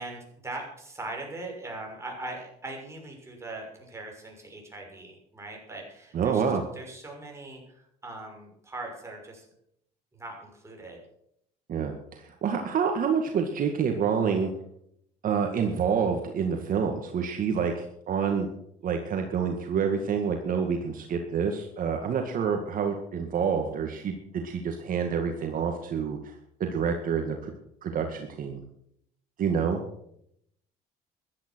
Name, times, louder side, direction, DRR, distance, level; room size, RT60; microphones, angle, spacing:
voice 1, 0.0-6.4 6.7-9.5 10.1-11.0, right 2 dB, 15° right, 0 dB, 6.3 m, -40 dB
voice 2, 6.1-6.6 11.7-14.5 15.2-18.5 18.8-26.4 26.6-27.5 27.8-28.6 29.4-29.8, right 6 dB, 55° right, 4 dB, 2.0 m, -28 dB
15.0 x 11.5 x 6.3 m, 0.73 s
cardioid pair, 110°, 17 cm